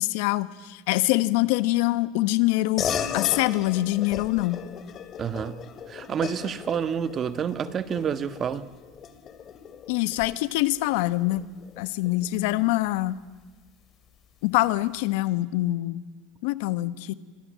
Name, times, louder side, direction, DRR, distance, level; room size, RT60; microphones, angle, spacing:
voice 1, 0.0-4.6 9.9-11.4 11.8-13.2 14.4-16.0 16.4-17.1, left 18 dB, 75° left, 14 dB, 1.1 m, -24 dB
sound 1, 2.8-12.6, left 8 dB, 40° left, 2.5 m, -36 dB
voice 2, 5.2-8.7, right 7 dB, 35° right, 12 dB, 1.3 m, -29 dB
28.0 x 25.0 x 7.5 m, 1.3 s
supercardioid pair, 115°, 0 cm